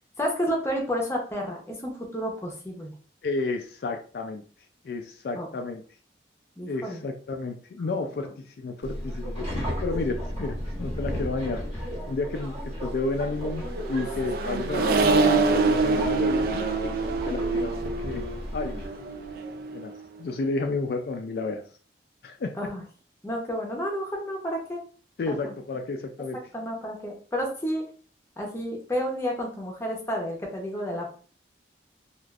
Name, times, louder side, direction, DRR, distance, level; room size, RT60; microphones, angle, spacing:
voice 1, 0.2-2.9 5.4-5.5 6.6-7.0 17.0-17.1 17.6-17.7 22.6-22.8 23.2-24.8 25.3-25.5 26.5-27.8 28.4-31.0, equal, 15° left, 0 dB, 0.7 m, -31 dB
voice 2, 3.2-4.4 4.8-5.8 6.7-16.6 17.3-17.7 18.0-18.3 18.5-18.9 19.7-19.9 20.2-21.6 22.2-22.5 25.2-26.4, left 3 dB, 60° left, 4 dB, 0.3 m, -31 dB
Subway metro underground, 8.8-18.9, equal, 35° right, 1.0 m, -34 dB
Accelerating revving vroom, 13.3-20.0, right 3 dB, 55° right, 0.3 m, -26 dB
3.3 x 2.4 x 2.3 m, 0.41 s
head